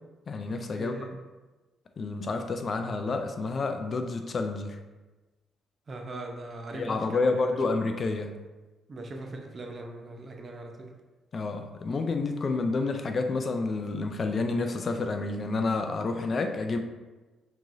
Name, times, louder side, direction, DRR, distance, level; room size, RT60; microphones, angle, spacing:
voice 1, 0.3-0.9 2.0-4.8 6.7-8.4 11.3-16.8, left 3 dB, 45° left, 6 dB, 0.5 m, -29 dB
voice 2, 0.8-1.1 5.9-7.5 8.9-10.9, right 2 dB, 40° right, 2 dB, 0.8 m, -40 dB
6.0 x 3.1 x 2.7 m, 1.2 s
cardioid pair, 90°, 0 cm